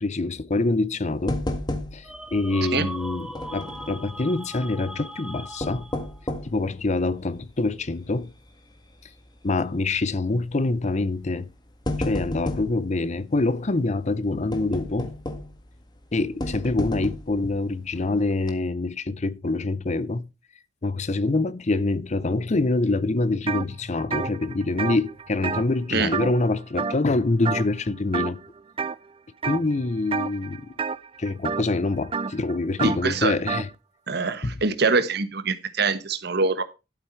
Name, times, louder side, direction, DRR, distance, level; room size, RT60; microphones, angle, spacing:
voice 1, 0.0-1.4 1.9-5.9 6.4-8.3 9.4-11.5 12.0-15.1 16.1-20.3 20.8-28.4 29.4-30.7 31.2-33.7 34.4-34.5, left 2 dB, 40° left, 0.6 m, -25 dB
sound 1, 1.3-2.3 2.5-2.6 3.4-4.0 5.4-6.6 7.2-7.3 7.9-8.2 8.5-8.6 9.7-10.0 10.9-11.1 11.5-12.8 14.5-15.7 16.4-17.4 17.9-18.0 18.4-18.5, left 1 dB, 25° left, 1.7 m, -31 dB
sound 2, 2.0-6.2, right 1 dB, 5° right, 0.9 m, -39 dB
sound 3, 23.5-23.7 24.0-26.5 26.8-27.1 27.4-27.8 28.1-28.9 29.4-29.7 30.1-33.7, right 5 dB, 30° right, 0.5 m, -30 dB
voice 2, 32.8-33.3 34.1-36.6, right 4 dB, 60° right, 1.3 m, -24 dB
12.0 x 8.1 x 4.6 m
head